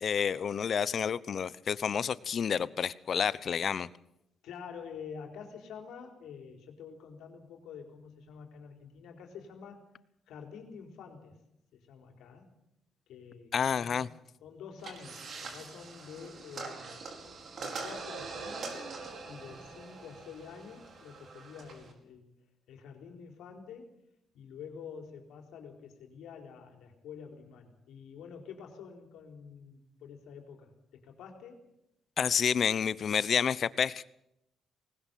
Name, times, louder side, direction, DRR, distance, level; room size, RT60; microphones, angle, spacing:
voice 1, 0.0-3.9 13.5-14.1 32.2-34.1, left 7 dB, 50° left, 18 dB, 0.9 m, -29 dB
voice 2, 4.4-9.9 10.3-11.4 11.7-12.5 13.1-14.0 14.4-17.0 17.6-22.3 22.7-23.9 24.3-31.6, left 6 dB, 80° left, 4 dB, 4.2 m, -48 dB
sound 1, 14.8-21.9, right 4 dB, 55° right, 4.8 m, -43 dB
20.0 x 19.5 x 7.6 m, 0.81 s
cardioid pair, 90°, 0 cm